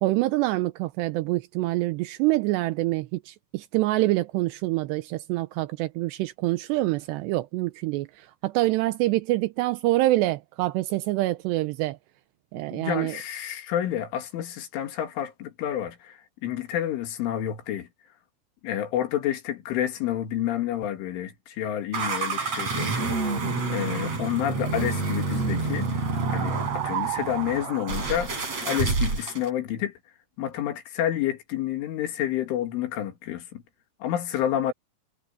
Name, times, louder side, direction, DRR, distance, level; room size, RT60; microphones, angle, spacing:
voice 1, 0.0-12.0 12.5-13.2, right 18 dB, 80° right, 2.6 m, -26 dB
voice 2, 12.7-17.9 18.6-28.3 28.6-29.9 30.4-33.6 34.0-34.7, left 11 dB, 85° left, 4.8 m, -29 dB
sound 1, 21.9-29.5, right 4 dB, 35° right, 6.4 m, -28 dB
omnidirectional pair, 5.5 m